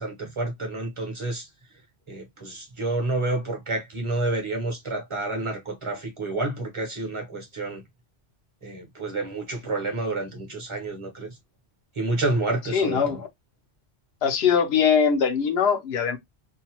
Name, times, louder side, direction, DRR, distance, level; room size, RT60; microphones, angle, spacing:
voice 1, 0.0-1.5 2.1-7.8 8.6-11.3 12.0-13.2, right 2 dB, 30° right, 0.9 m, -29 dB
voice 2, 12.7-13.3 14.2-16.2, left 7 dB, 70° left, 0.9 m, -22 dB
2.7 x 2.2 x 2.9 m
omnidirectional pair, 1.1 m